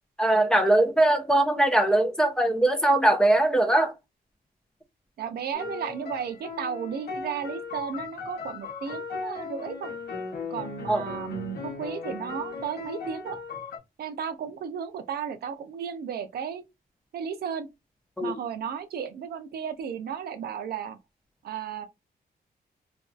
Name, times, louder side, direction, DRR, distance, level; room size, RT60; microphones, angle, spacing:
voice 1, 0.2-3.9 10.9-11.0 18.2-18.4, right 1 dB, 5° left, 0.4 m, -21 dB
voice 2, 5.2-9.9 10.5-13.4 14.0-16.6 17.1-17.7 18.2-21.0 21.4-21.9, right 7 dB, 75° right, 0.5 m, -34 dB
sound 1, 5.5-13.8, left 4 dB, 85° left, 0.8 m, -37 dB
2.6 x 2.2 x 2.3 m
wide cardioid pair, 165°, 16 cm